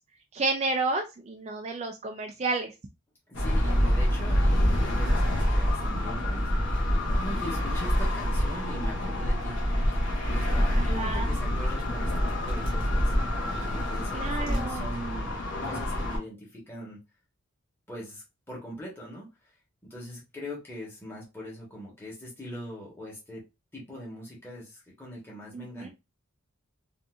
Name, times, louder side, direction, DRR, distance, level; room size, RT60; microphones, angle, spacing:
voice 1, 0.3-2.7 10.8-11.3 14.1-14.8 25.5-25.9, right 3 dB, 30° right, 4 dB, 0.3 m, -31 dB
sound 1, 3.3-16.2, equal, 55° left, 1.1 m, -26 dB
voice 2, 3.3-9.6 10.3-13.1 13.6-15.3 15.6-17.0 17.9-19.6 19.9-23.5 23.7-25.9, equal, 10° left, -5 dB, 1.1 m, -41 dB
3.7 x 2.6 x 2.4 m, 0.25 s
head